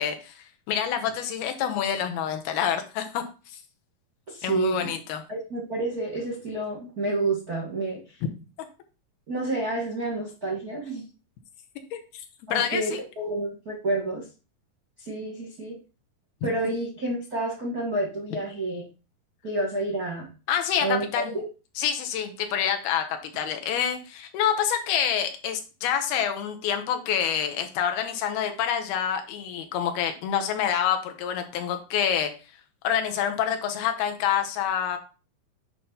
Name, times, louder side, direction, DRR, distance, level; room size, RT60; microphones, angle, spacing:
voice 1, 0.0-3.6 4.4-5.2 11.9-12.2 12.5-13.0 20.5-21.3 21.8-32.3 32.8-35.0, left 9 dB, 80° left, 6 dB, 2.8 m, -27 dB
voice 2, 4.3-4.9 5.3-8.0 9.3-11.0 12.5-14.2 15.0-15.8 16.4-18.8 19.4-20.3 20.8-21.4, right 2 dB, 75° right, -2 dB, 0.8 m, -29 dB
8.4 x 2.9 x 5.4 m, 0.32 s
omnidirectional pair, 4.4 m